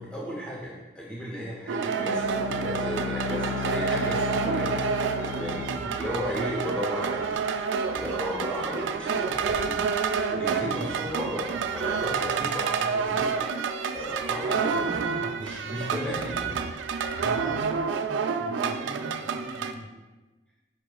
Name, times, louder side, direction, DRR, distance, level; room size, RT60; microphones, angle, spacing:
voice 1, 0.0-4.8 5.3-7.4 7.8-9.9 10.3-13.4 13.9-16.4 17.2-17.4, equal, 5° left, -5 dB, 0.5 m, -35 dB
sound 1, 1.7-19.7, right 5 dB, 85° right, 0.3 m, -29 dB
Bowed string instrument, 2.0-7.0, left 5 dB, 65° left, 1.1 m, -34 dB
voice 2, 5.7-6.0 14.8-15.2 15.8-16.6 17.3-19.9, equal, 15° right, -6 dB, 1.5 m, -41 dB
5.0 x 4.7 x 2.2 m, 1.2 s
head